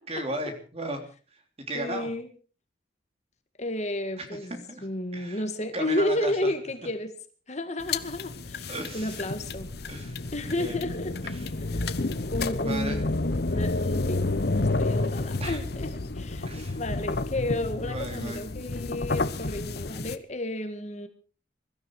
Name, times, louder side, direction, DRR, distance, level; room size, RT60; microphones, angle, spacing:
voice 1, 0.1-1.0 1.7-2.1 4.2-4.4 4.7-4.9 5.1-5.4 5.7-6.5 8.7-9.3 9.9-10.2 10.5-10.7 11.2-11.5 12.6-13.0 15.4-15.6 16.4-16.8 17.8-18.4, right 1 dB, 30° right, 5 dB, 3.2 m, -35 dB
voice 2, 1.7-2.3 3.6-7.1 7.5-9.7 10.3-11.1 11.6-11.9 12.3-13.2 13.5-15.9 16.2-16.5 16.8-21.1, left 1 dB, 35° left, 8 dB, 1.7 m, -32 dB
sound 1, 7.8-20.2, left 2 dB, 55° left, 1.0 m, -30 dB
21.5 x 13.0 x 4.8 m, 0.40 s
head